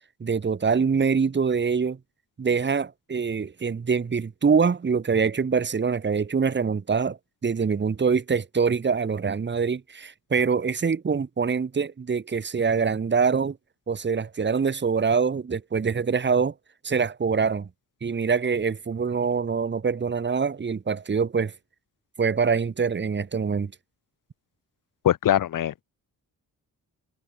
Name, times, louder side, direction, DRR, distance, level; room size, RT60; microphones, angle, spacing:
voice 1, 0.2-2.0 2.4-7.2 7.4-13.6 13.9-16.5 16.8-17.7 18.0-21.5 22.2-23.7, right 5 dB, 30° right, 0.9 m, -24 dB
voice 2, 25.0-25.8, left 11 dB, 55° left, 0.7 m, -22 dB
supercardioid pair, 55°, 40 cm